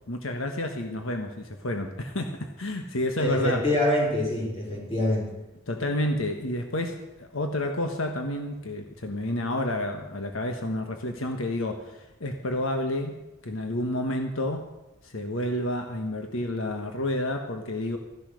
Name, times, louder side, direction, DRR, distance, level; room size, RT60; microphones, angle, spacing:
voice 1, 0.1-3.6 5.7-14.7 15.0-18.0, left 1 dB, 80° left, 4 dB, 1.4 m, -30 dB
voice 2, 3.2-5.3, left 1 dB, 30° left, -1 dB, 4.1 m, -25 dB
15.0 x 10.5 x 6.4 m, 0.98 s
head